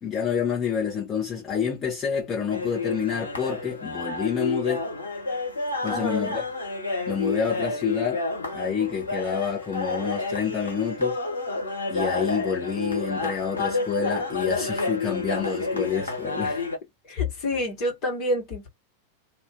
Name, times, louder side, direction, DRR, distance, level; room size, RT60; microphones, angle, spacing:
voice 1, 0.0-4.9 5.8-6.4 7.1-8.2 8.5-11.2 11.9-16.6, left 7 dB, 20° left, 1.5 m, -28 dB
sound 1, 2.5-16.8, left 3 dB, 75° left, 1.3 m, -29 dB
voice 2, 5.8-6.4 17.1-18.7, left 1 dB, 40° left, 1.8 m, -28 dB
3.0 x 2.8 x 2.5 m
figure-of-eight pair, 90°, 0 cm